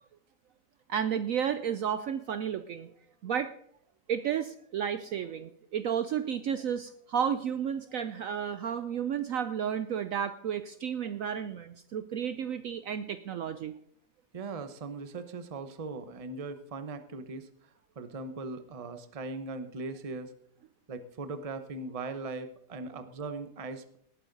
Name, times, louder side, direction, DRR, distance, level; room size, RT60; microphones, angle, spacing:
voice 1, 0.9-2.9 3.2-3.5 4.1-13.8, right 8 dB, 65° right, 11 dB, 0.9 m, -32 dB
voice 2, 14.3-17.5 18.0-20.3 20.9-24.0, right 3 dB, 30° right, 9 dB, 0.7 m, -39 dB
18.5 x 9.2 x 4.0 m, 0.67 s
omnidirectional pair, 1.8 m